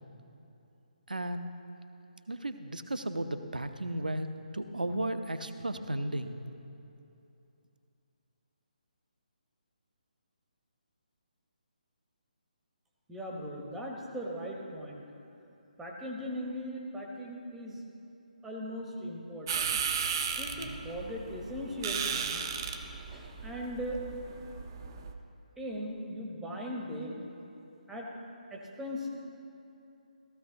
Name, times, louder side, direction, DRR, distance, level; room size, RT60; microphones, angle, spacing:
voice 1, 1.1-1.5 2.3-4.3 4.5-6.4, right 1 dB, 75° right, 8 dB, 0.7 m, -34 dB
voice 2, 13.1-15.0 15.8-17.8 18.4-19.8 20.4-22.4 23.1-24.0 25.6-27.2 27.9-28.1 28.5-29.1, equal, 5° right, -2 dB, 1.1 m, -39 dB
sound 1, 19.5-25.1, right 7 dB, 30° right, 0.6 m, -35 dB
15.5 x 13.5 x 2.8 m, 2.8 s
figure-of-eight pair, 145°, 5 cm